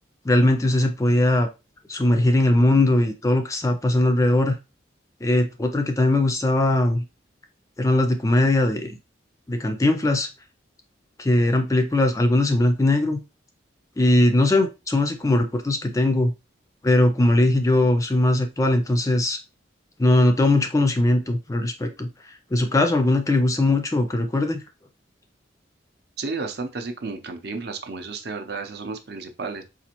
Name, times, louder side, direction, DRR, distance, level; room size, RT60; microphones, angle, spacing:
voice 1, 0.2-1.5 1.9-4.6 5.2-7.0 7.8-9.0 9.5-10.3 11.2-13.2 14.0-16.3 16.8-19.4 20.0-22.1 22.5-24.6, left 1 dB, 15° left, 6 dB, 0.4 m, -20 dB
voice 2, 26.2-29.6, right 4 dB, 55° right, 6 dB, 0.6 m, -32 dB
4.1 x 2.5 x 2.9 m, 0.27 s
head